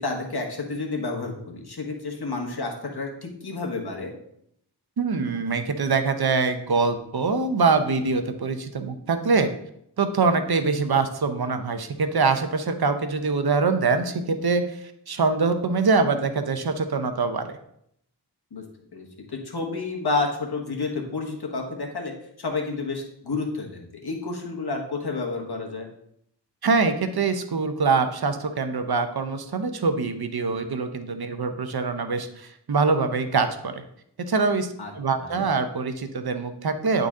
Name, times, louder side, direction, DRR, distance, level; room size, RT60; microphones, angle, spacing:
voice 1, 0.0-4.1 18.5-18.6 18.9-25.9 34.8-34.9 35.2-35.5, left 3 dB, 65° left, 1 dB, 1.4 m, -30 dB
voice 2, 5.0-9.5 10.0-17.5 26.6-33.8 34.3-37.1, right 4 dB, 65° right, 8 dB, 0.8 m, -24 dB
9.5 x 3.9 x 3.7 m, 0.72 s
wide cardioid pair, 55°, 41 cm